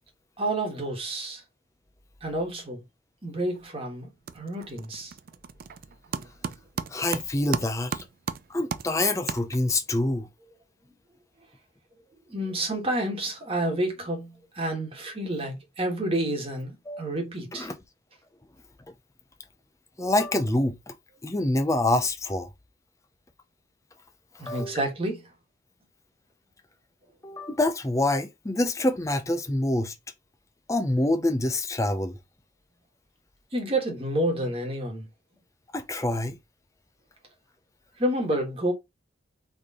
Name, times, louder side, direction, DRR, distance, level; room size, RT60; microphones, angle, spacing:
voice 1, 0.4-1.4 2.2-2.8 3.2-5.1 12.3-17.7 24.4-25.3 33.5-35.1 38.0-38.7, right 1 dB, 30° right, 1.4 m, -29 dB
sound 1, 3.4-3.8 4.0-9.9, right 6 dB, 45° right, 0.4 m, -36 dB
voice 2, 6.9-8.0 8.5-10.3 16.9-17.0 17.5-17.7 20.0-20.9 21.2-22.5 24.4-24.8 27.2-29.9 30.7-32.2 35.7-36.4, left 1 dB, 15° left, 0.5 m, -26 dB
4.1 x 3.4 x 3.6 m
head